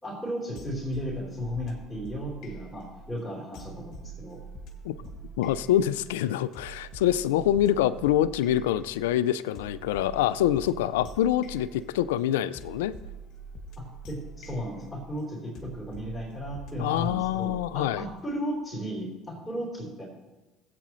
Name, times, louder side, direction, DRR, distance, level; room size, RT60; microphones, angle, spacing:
voice 1, 0.0-4.4 5.0-5.1 13.8-20.1, equal, 15° left, -4 dB, 3.8 m, -35 dB
sound 1, 0.6-18.3, right 3 dB, 60° left, 1.7 m, -45 dB
voice 2, 5.4-13.0 16.8-18.0, left 12 dB, 85° left, 16 dB, 0.3 m, -25 dB
16.5 x 8.4 x 3.1 m, 1.1 s
hypercardioid pair, 65°, 0 cm